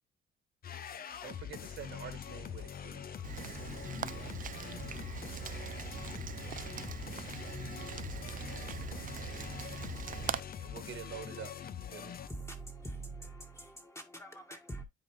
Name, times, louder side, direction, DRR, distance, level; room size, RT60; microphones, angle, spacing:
sound 1, 0.6-12.3, left 8 dB, 50° left, 0.8 m, -43 dB
voice 1, 1.2-3.1 10.6-12.2, right 9 dB, 70° right, 1.5 m, -47 dB
Rain, 3.2-10.4, right 9 dB, 40° right, 0.4 m, -42 dB
voice 2, 12.2-14.8, right 2 dB, 15° left, 2.1 m, -44 dB
voice 3, 13.4-13.7, right 2 dB, 15° right, 1.7 m, -76 dB
9.7 x 4.2 x 3.3 m
cardioid pair, 90°, 20 cm